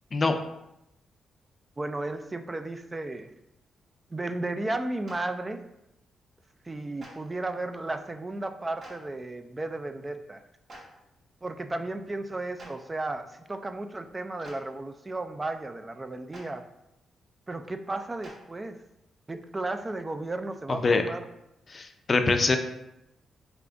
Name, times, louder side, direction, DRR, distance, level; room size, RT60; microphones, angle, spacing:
voice 1, 1.8-3.3 4.1-5.6 6.7-10.4 11.4-16.6 17.5-18.8 19.3-21.3, right 2 dB, 25° right, 8 dB, 0.4 m, -34 dB
Clapping, 5.0-5.2 7.0-7.1 8.8-8.9 10.7-10.8 12.6-12.7 14.4-14.5 16.3-16.4 18.2-18.3, right 1 dB, 60° right, 1.5 m, -45 dB
voice 2, 20.7-21.0 21.7-22.6, left 3 dB, 45° left, 6 dB, 0.5 m, -24 dB
4.6 x 3.5 x 2.6 m, 0.86 s
supercardioid pair, 60°, 0 cm